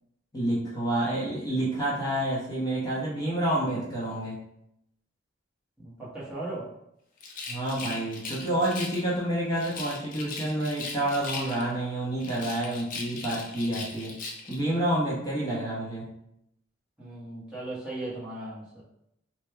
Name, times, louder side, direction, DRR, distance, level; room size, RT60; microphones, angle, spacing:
voice 1, 0.3-4.4 7.5-14.1 14.5-16.1, right 1 dB, 20° left, -7 dB, 0.8 m, -29 dB
voice 2, 5.8-6.6 17.0-18.8, right 2 dB, 5° right, -10 dB, 1.0 m, -37 dB
Rattle, 7.2-9.1 9.6-11.8 12.2-14.6, left 3 dB, 45° left, 0.5 m, -39 dB
3.1 x 2.2 x 3.3 m, 0.79 s
head